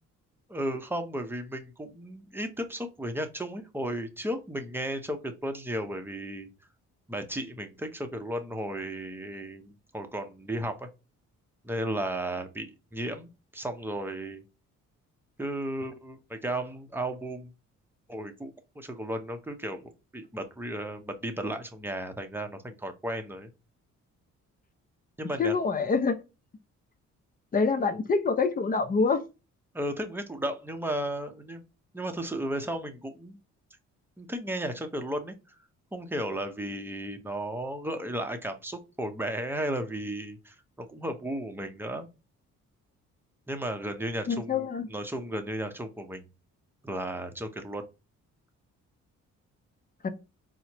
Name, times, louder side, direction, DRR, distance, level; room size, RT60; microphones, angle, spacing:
voice 1, 0.5-6.5 7.1-10.9 11.6-14.4 15.4-17.5 18.1-18.5 18.8-23.5 25.2-25.6 29.7-31.6 31.9-33.4 34.2-35.3 35.9-42.1 43.5-46.3 46.8-47.9, right 1 dB, 5° right, 0.7 m, -34 dB
voice 2, 25.4-26.2 27.5-29.2 44.3-44.9 50.0-50.1, left 4 dB, 30° left, 0.6 m, -26 dB
4.3 x 2.1 x 2.8 m
cardioid pair, 90°, 30 cm